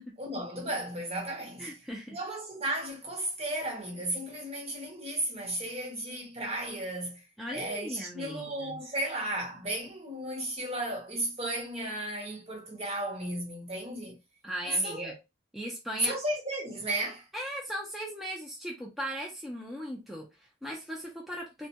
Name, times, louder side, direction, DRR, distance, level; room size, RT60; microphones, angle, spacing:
voice 1, 0.2-1.7 2.1-7.3 7.5-14.2 14.6-15.2 16.0-17.3, right 1 dB, 35° right, 0.8 m, -34 dB
voice 2, 1.6-2.2 7.4-8.8 14.4-15.2 15.5-16.2 17.3-21.7, equal, ahead, 0.5 m, -38 dB
2.2 x 2.2 x 2.7 m
head